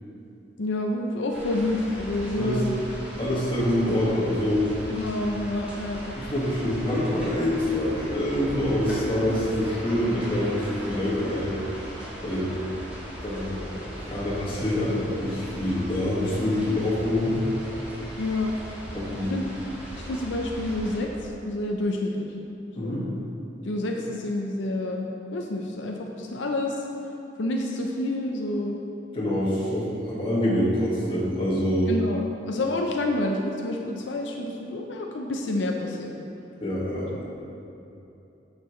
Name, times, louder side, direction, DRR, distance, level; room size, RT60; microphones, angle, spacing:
voice 1, 0.6-2.7 3.8-3.9 4.9-6.1 18.2-18.5 19.3-19.5 19.9-22.3 22.7-23.0 23.6-26.8 27.4-28.8 31.9-36.1 37.1-37.2, left 1 dB, 85° left, 1 dB, 0.6 m, -28 dB
sound 1, 1.3-21.0, equal, 10° right, 1.7 m, -38 dB
voice 2, 3.2-4.7 6.2-11.5 12.2-12.5 13.2-17.4 18.9-19.4 22.7-23.1 29.1-31.9 36.6-37.2, left 1 dB, 30° left, -8 dB, 1.8 m, -26 dB
9.0 x 6.6 x 3.1 m, 2.8 s
head